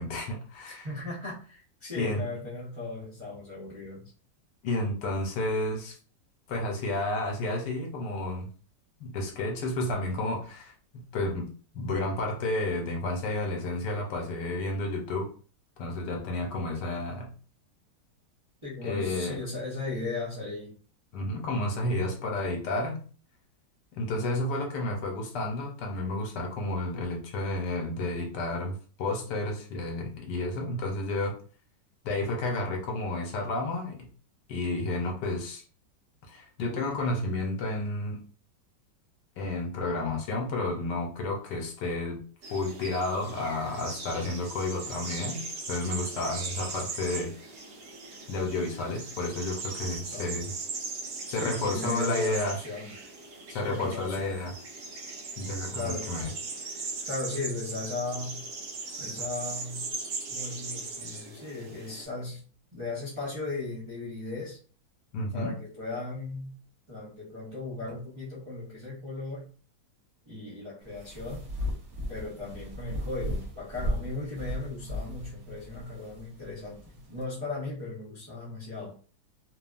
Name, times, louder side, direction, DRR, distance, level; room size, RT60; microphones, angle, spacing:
voice 1, 0.0-0.9 1.9-2.2 4.6-6.0 6.5-8.5 9.0-11.5 11.7-15.3 15.8-17.3 18.8-19.5 21.1-23.0 24.0-31.4 32.0-34.1 34.5-35.6 36.3-38.2 39.4-42.2 42.5-45.4 45.7-47.3 48.3-50.5 51.3-52.6 53.5-54.5 55.4-56.3 65.1-65.5, left 2 dB, 75° left, 1 dB, 1.4 m, -31 dB
voice 2, 0.7-4.1 18.6-20.8 46.1-46.3 50.1-50.4 51.3-52.9 53.5-54.4 55.7-56.2 57.0-58.5 59.0-59.9 60.3-64.6 65.3-66.6 66.9-69.5 70.3-71.5 72.1-79.0, left 3 dB, 35° right, -7 dB, 0.5 m, -37 dB
sound 1, 42.4-62.0, right 4 dB, 65° right, 1.3 m, -39 dB
sound 2, 70.8-77.2, equal, 50° right, 0.8 m, -36 dB
3.3 x 2.3 x 2.4 m, 0.39 s
omnidirectional pair, 1.9 m